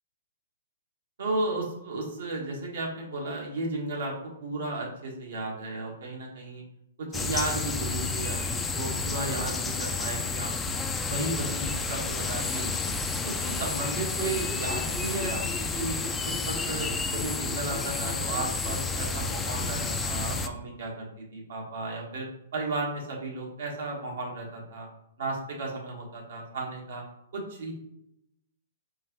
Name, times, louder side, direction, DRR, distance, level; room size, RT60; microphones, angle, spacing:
voice 1, 1.2-4.1 4.4-6.6 7.0-10.8 11.1-12.9 13.2-15.9 16.2-22.3 22.5-24.9 25.2-27.0 27.3-27.7, right 2 dB, 70° right, -2 dB, 1.6 m, -34 dB
sound 1, 7.1-20.5, left 4 dB, 10° left, 0.3 m, -30 dB
4.6 x 3.5 x 3.1 m, 0.81 s
hypercardioid pair, 135°, 0 cm